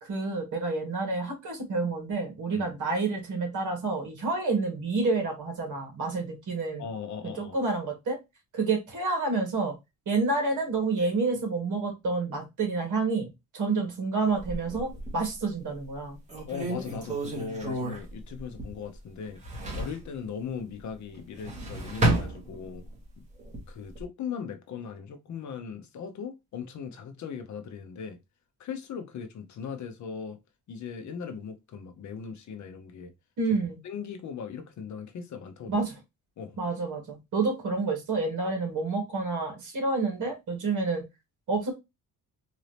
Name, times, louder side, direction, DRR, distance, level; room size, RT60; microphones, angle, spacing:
voice 1, 0.0-6.8 7.4-8.2 8.5-9.7 10.1-13.3 13.5-16.2 33.4-33.8 35.7-35.9 36.6-41.0 41.5-41.7, right 3 dB, 55° right, 2.0 m, -29 dB
voice 2, 6.8-7.6 16.5-19.4 19.7-22.9 23.2-23.3 23.7-28.2 28.6-30.4 30.7-33.1 33.8-35.8 36.4-36.6, left 6 dB, 50° left, 0.8 m, -38 dB
sound 1, 14.4-15.3 15.8-15.9 16.3-18.9 19.2-20.1 21.2-23.0 23.4-24.0, right 1 dB, 20° right, 1.6 m, -31 dB
4.0 x 2.7 x 3.1 m
cardioid pair, 150°, 36 cm